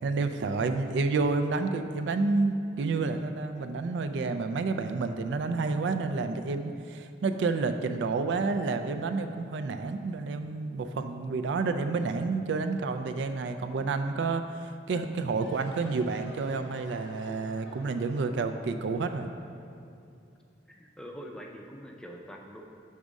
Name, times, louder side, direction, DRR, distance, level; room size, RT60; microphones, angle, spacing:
voice 1, 0.0-19.3, right 3 dB, 75° right, 8 dB, 0.3 m, -29 dB
sound 1, 15.3-20.5, left 1 dB, 85° left, 0.9 m, -51 dB
voice 2, 20.7-22.6, equal, 5° left, 0 dB, 0.4 m, -44 dB
6.4 x 3.5 x 5.1 m, 2.4 s
head